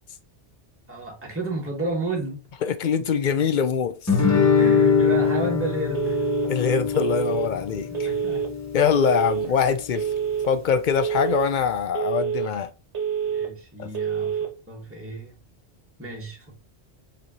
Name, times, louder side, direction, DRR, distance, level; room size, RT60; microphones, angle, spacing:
voice 1, 0.9-2.4 4.6-6.3 7.9-8.4 13.2-15.3 16.0-16.5, right 2 dB, 10° right, 1.2 m, -32 dB
voice 2, 2.6-4.1 6.5-8.1 8.7-10.1 10.5-12.7 13.8-13.9, left 7 dB, 55° left, 0.6 m, -23 dB
Guitar, 4.1-9.1, left 6 dB, 15° left, 0.9 m, -23 dB
Telephone, 5.9-6.5 6.9-7.5 7.9-8.5 8.9-9.5 9.9-10.5 10.9-11.5 11.9-12.5 12.9-13.5 13.9-14.5, right 8 dB, 75° right, 1.4 m, -26 dB
5.0 x 3.3 x 2.8 m
omnidirectional pair, 1.2 m